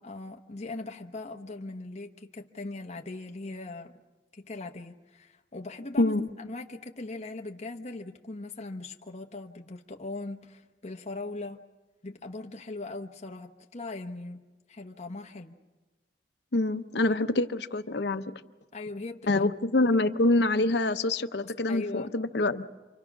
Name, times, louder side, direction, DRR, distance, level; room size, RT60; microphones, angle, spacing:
voice 1, 0.0-3.9 4.3-11.6 12.0-14.4 14.7-15.5 18.7-19.3 21.4-22.2, left 2 dB, 40° left, 2 dB, 1.0 m, -40 dB
voice 2, 6.0-6.3 16.5-18.3 19.3-22.7, left 2 dB, 70° left, 9 dB, 0.8 m, -26 dB
28.5 x 24.5 x 6.0 m, 1.2 s
head